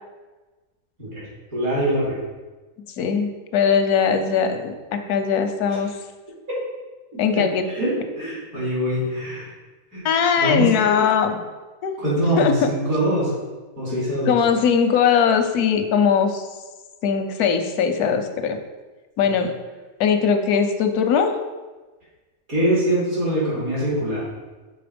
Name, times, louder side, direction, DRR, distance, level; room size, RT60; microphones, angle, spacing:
voice 1, 1.5-2.2 7.3-9.5 9.9-10.0 10.4-11.0 12.0-13.3 13.8-14.4 19.2-19.3 22.5-24.2, right 1 dB, 70° right, -7 dB, 3.1 m, -23 dB
voice 2, 3.0-5.9 7.2-7.6 10.0-11.4 11.8-11.9 12.4-12.7 14.3-16.5 17.0-18.6 19.2-19.5 20.0-21.4, left 6 dB, 90° left, 7 dB, 1.2 m, -20 dB
6.8 x 4.2 x 5.1 m, 1.2 s
omnidirectional pair, 1.6 m